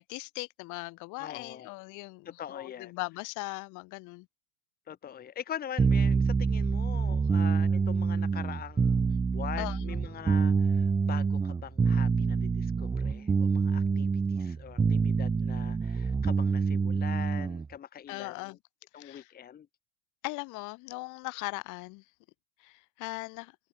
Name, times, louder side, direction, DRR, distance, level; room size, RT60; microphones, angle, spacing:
voice 1, 0.0-4.3 9.6-10.0 18.1-18.6 18.9-19.3 20.2-22.0 22.6-23.6, left 25 dB, 45° left, 2.9 m, -39 dB
voice 2, 1.2-1.8 2.3-2.9 4.9-18.6 18.9-19.7, left 9 dB, 20° left, 1.9 m, -43 dB
sound 1, 5.8-17.7, right 5 dB, 10° right, 0.6 m, -26 dB
supercardioid pair, 130°, 42 cm